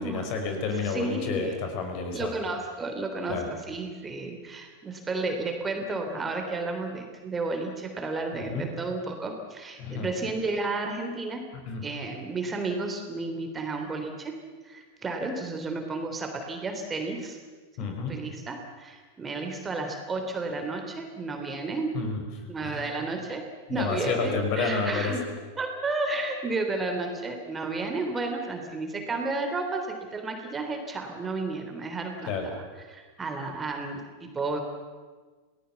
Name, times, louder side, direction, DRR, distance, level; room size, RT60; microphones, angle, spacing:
voice 1, 0.0-2.3 3.3-3.5 8.3-8.7 9.8-10.1 11.5-11.8 17.8-18.1 21.9-22.9 23.7-25.2 32.3-32.5, left 4 dB, 45° left, 4 dB, 5.2 m, -30 dB
voice 2, 0.8-1.6 2.1-3.4 3.7-11.4 11.8-14.3 14.6-17.4 17.8-21.9 22.5-23.4 23.7-25.2 25.6-32.6 32.9-34.6, right 3 dB, 15° right, 4 dB, 3.5 m, -32 dB
29.5 x 19.5 x 7.2 m, 1.4 s
figure-of-eight pair, 90°, 0 cm